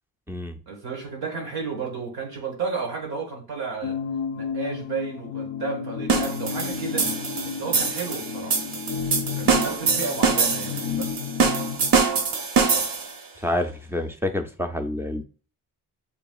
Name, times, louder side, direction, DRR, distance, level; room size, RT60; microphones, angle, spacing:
voice 1, 0.7-4.0 4.3-7.1 7.4-8.6 9.4-11.1, right 4 dB, 85° right, 2.0 m, -32 dB
sound 1, 3.8-12.0, left 6 dB, 55° left, 0.5 m, -32 dB
sound 2, 6.1-13.2, right 5 dB, 65° right, 0.9 m, -24 dB
voice 2, 13.4-15.2, left 1 dB, 5° right, 0.4 m, -28 dB
6.9 x 2.8 x 2.3 m
cardioid pair, 125°, 37 cm